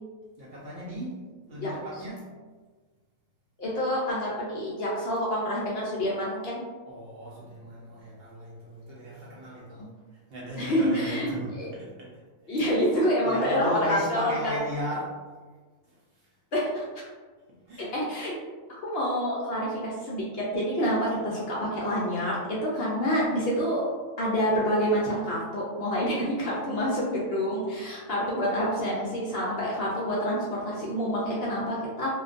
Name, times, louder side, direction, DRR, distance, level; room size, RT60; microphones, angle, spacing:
voice 1, 0.4-1.2 1.4-2.3 6.8-12.5 13.2-15.1 16.1-16.3 17.5-17.9, equal, 60° right, -6 dB, 0.7 m, -37 dB
voice 2, 3.6-6.6 10.6-11.7 12.5-14.3 16.5-16.8 17.9-18.3 18.7-23.8 24.2-32.1, equal, 60° left, -5 dB, 0.7 m, -27 dB
2.4 x 2.2 x 2.4 m, 1.4 s
omnidirectional pair, 1.3 m